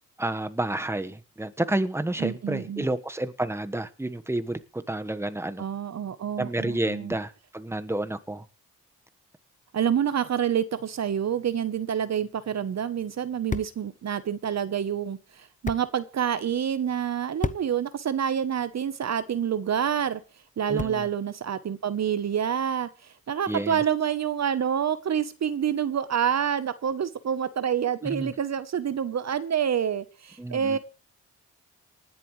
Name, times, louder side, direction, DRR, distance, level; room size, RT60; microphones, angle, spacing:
voice 1, 0.2-5.6 6.4-8.4 20.7-21.0 23.5-23.8 28.0-28.3 30.4-30.8, right 1 dB, 10° right, 1.3 m, -30 dB
voice 2, 2.2-2.9 5.6-7.2 9.7-20.2 20.6-30.8, right 8 dB, 55° right, 1.0 m, -27 dB
sound 1, 12.3-21.3, left 4 dB, 25° left, 0.8 m, -40 dB
19.5 x 10.5 x 3.2 m
supercardioid pair, 45°, 32 cm